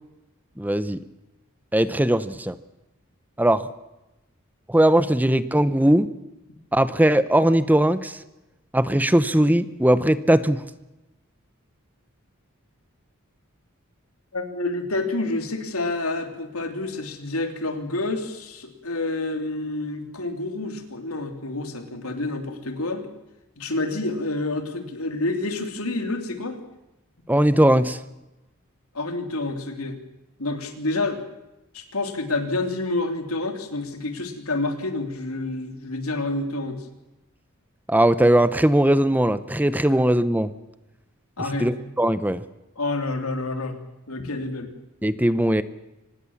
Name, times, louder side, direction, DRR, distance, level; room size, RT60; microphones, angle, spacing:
voice 1, 0.6-1.0 1.7-2.6 3.4-3.7 4.7-6.1 6.7-8.2 8.7-10.6 27.3-28.0 37.9-40.5 41.6-42.4 45.0-45.6, right 1 dB, 10° right, 14 dB, 0.8 m, -19 dB
voice 2, 14.3-23.1 23.6-26.6 28.9-30.0 30.4-31.2 31.7-36.9 41.4-41.7 42.8-43.8 44.1-44.7, left 2 dB, 90° left, 6 dB, 3.2 m, -28 dB
25.0 x 19.5 x 7.3 m, 0.97 s
head